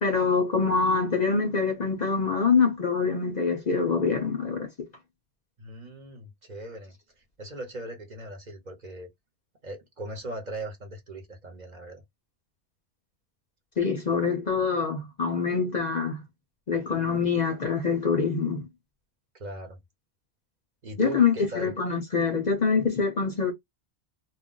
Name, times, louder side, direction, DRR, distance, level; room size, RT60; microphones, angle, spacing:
voice 1, 0.0-4.7 13.8-16.2 16.7-18.7 21.0-23.5, left 5 dB, 50° left, 0.6 m, -25 dB
voice 2, 5.6-7.0 7.4-9.1 9.6-12.0 19.4-19.8 20.8-21.7, right 1 dB, 45° right, 0.9 m, -39 dB
2.3 x 2.2 x 3.7 m
omnidirectional pair, 1.1 m